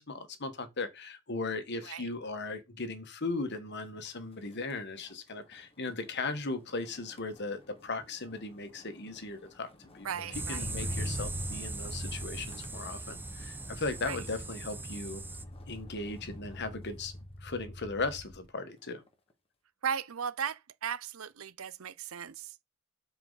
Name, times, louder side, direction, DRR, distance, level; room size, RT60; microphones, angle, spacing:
voice 1, 0.0-10.1 10.3-15.2 15.7-17.1 17.4-19.0, left 3 dB, 55° left, 1.5 m, -37 dB
Motor vehicle (road), 3.4-3.7 4.0-18.5 18.9-19.3, left 1 dB, 25° left, 1.5 m, -45 dB
voice 2, 10.0-11.0 14.1-14.2 19.8-22.6, right 7 dB, 75° right, 0.6 m, -37 dB
sound 1, 10.3-15.4, right 3 dB, 10° right, 0.6 m, -40 dB
12.5 x 4.8 x 4.0 m
head